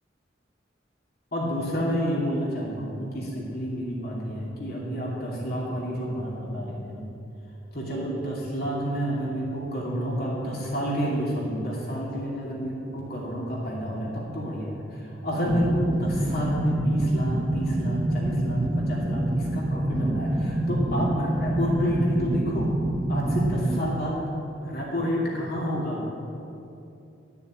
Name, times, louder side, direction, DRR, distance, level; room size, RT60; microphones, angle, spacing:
voice 1, 1.3-7.0 7.7-22.7 23.1-24.1 24.6-26.1, equal, 55° left, -5 dB, 2.6 m, -29 dB
sound 1, 15.5-23.8, right 1 dB, 20° right, 0.7 m, -26 dB
13.0 x 7.1 x 8.7 m, 2.8 s
head